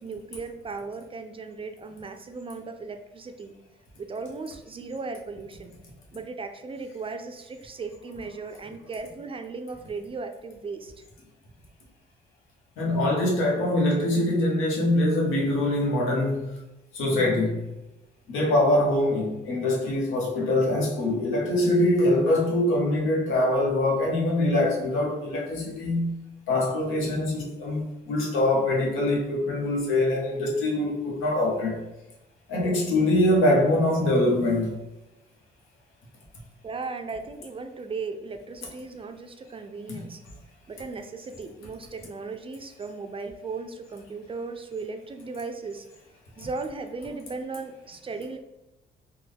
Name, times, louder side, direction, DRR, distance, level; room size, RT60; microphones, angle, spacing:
voice 1, 0.0-3.5 4.0-5.7 6.1-11.0 36.6-40.2 40.7-45.9 46.4-48.4, right 4 dB, 25° right, 6 dB, 0.3 m, -37 dB
voice 2, 12.8-16.6 16.9-17.7 18.3-26.2 26.5-31.8 32.5-34.8 39.9-40.0, left 1 dB, 90° left, -2 dB, 0.9 m, -23 dB
3.5 x 2.2 x 3.4 m, 0.99 s
cardioid pair, 90°, 20 cm